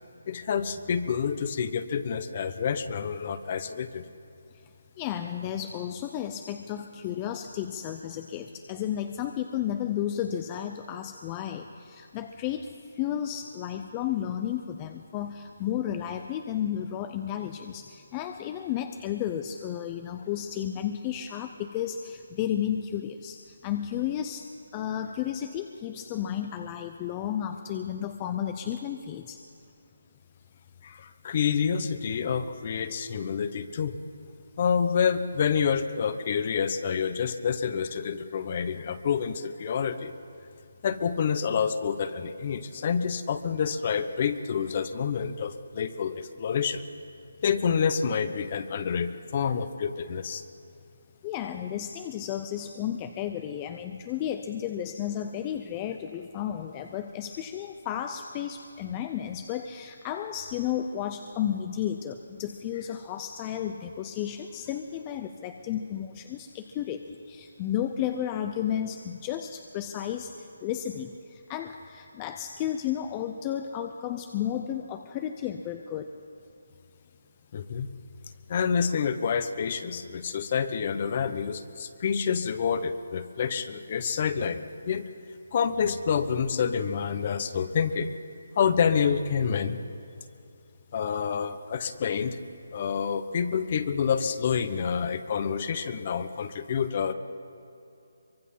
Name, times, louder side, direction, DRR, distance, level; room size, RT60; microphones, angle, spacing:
voice 1, 0.3-4.1 30.8-33.9 34.6-40.1 40.8-46.8 47.4-50.4 77.5-77.9 78.5-85.0 85.5-88.1 88.6-89.8 90.9-92.4 92.7-97.1, left 7 dB, 35° left, 12 dB, 1.0 m, -28 dB
voice 2, 5.0-29.4 51.2-76.1, left 10 dB, 20° left, 7 dB, 0.6 m, -33 dB
24.0 x 22.5 x 5.6 m, 2.6 s
hypercardioid pair, 170°, 0 cm